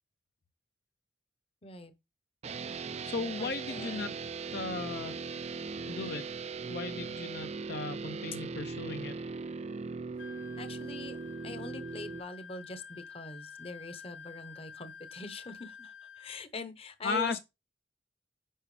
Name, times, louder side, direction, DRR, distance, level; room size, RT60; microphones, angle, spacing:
voice 1, 1.6-1.9 3.4-4.1 10.6-11.2 11.4-17.4, left 3 dB, 35° left, 0.9 m, -43 dB
sound 1, 2.4-12.2, right 4 dB, 35° right, 0.4 m, -39 dB
voice 2, 3.0-4.1 4.5-5.2 5.9-6.2 6.7-9.1 17.0-17.4, left 4 dB, 60° left, 0.7 m, -36 dB
Wind instrument woodwind instrument, 10.2-16.4, left 6 dB, 90° left, 0.9 m, -49 dB
10.0 x 6.0 x 3.2 m
head